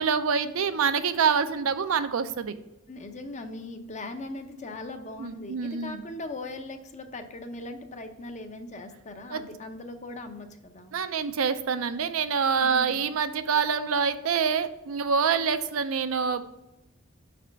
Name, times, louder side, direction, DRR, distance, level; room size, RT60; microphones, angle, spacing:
voice 1, 0.0-2.6 5.2-6.0 9.3-9.4 10.9-16.4, right 6 dB, 75° right, 10 dB, 0.5 m, -26 dB
voice 2, 2.9-11.0 12.6-13.1, left 2 dB, 35° left, 6 dB, 0.6 m, -39 dB
5.5 x 4.2 x 5.1 m, 0.94 s
head